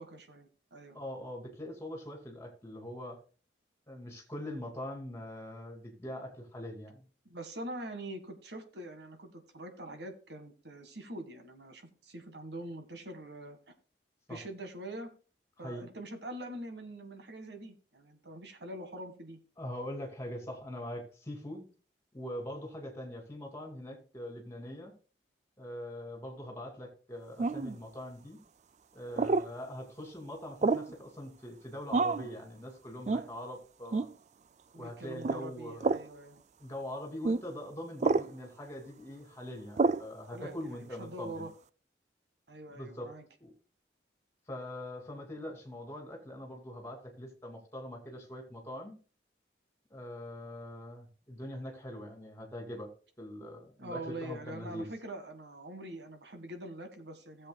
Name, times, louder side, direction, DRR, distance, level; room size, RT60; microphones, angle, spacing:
voice 1, 0.0-1.0 7.2-13.6 14.3-15.1 15.6-19.4 34.7-36.4 40.3-41.5 42.5-43.2 53.8-57.5, right 1 dB, 70° right, 6 dB, 1.7 m, -44 dB
voice 2, 0.9-3.2 3.9-7.0 14.3-14.4 15.6-15.8 19.6-21.7 22.1-24.9 25.6-28.4 28.9-34.1 34.7-36.0 36.6-41.5 42.7-43.1 43.4-43.5 44.5-49.0 49.9-52.9 53.2-54.9, left 1 dB, 15° left, 2 dB, 2.6 m, -42 dB
sound 1, 27.4-27.8 29.2-29.5 30.6-30.9 31.9-32.3 33.1-33.3 33.9-34.1 35.2-35.4 35.8-36.1 37.2-37.4 38.0-38.3 39.8-40.1, right 3 dB, 40° right, 0.3 m, -28 dB
17.0 x 7.6 x 2.3 m, 0.37 s
head